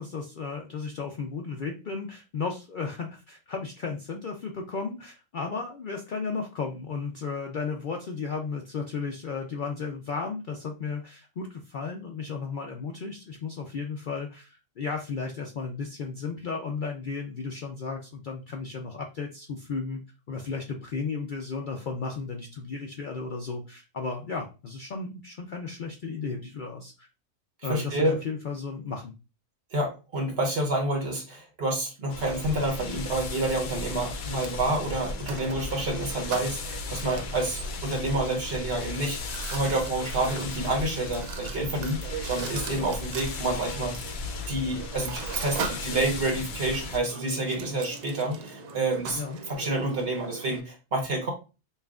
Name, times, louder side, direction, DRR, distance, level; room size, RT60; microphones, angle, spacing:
voice 1, 0.0-20.0 20.3-27.1 27.6-29.1 42.9-43.0 49.2-49.4, left 4 dB, 90° left, 2 dB, 0.4 m, -34 dB
voice 2, 27.7-28.1 29.7-44.0 44.5-49.2 49.5-51.3, right 2 dB, 45° right, 1 dB, 1.3 m, -28 dB
sound 1, 32.1-47.0, left 3 dB, 60° left, 0.8 m, -36 dB
Mechanisms, 32.4-50.6, right 5 dB, 80° right, 1.1 m, -40 dB
5.4 x 2.5 x 2.3 m, 0.31 s
omnidirectional pair, 1.5 m